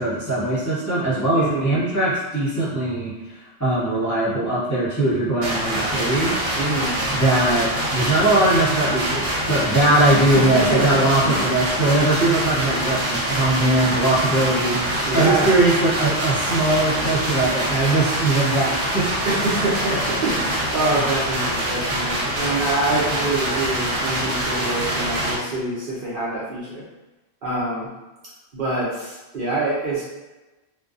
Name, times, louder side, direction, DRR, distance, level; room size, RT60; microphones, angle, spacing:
voice 1, 0.0-3.1 3.6-6.3 7.1-19.1, right 2 dB, 20° left, -11 dB, 0.7 m, -20 dB
voice 2, 1.3-1.8 6.6-7.0 10.2-11.5 15.1-15.5 19.2-26.8 27.4-27.9 28.5-30.0, right 2 dB, 55° right, -8 dB, 0.8 m, -25 dB
sound 1, 5.4-25.4, right 1 dB, 80° right, 1.0 m, -25 dB
2.5 x 2.2 x 2.4 m, 1.1 s
omnidirectional pair, 1.2 m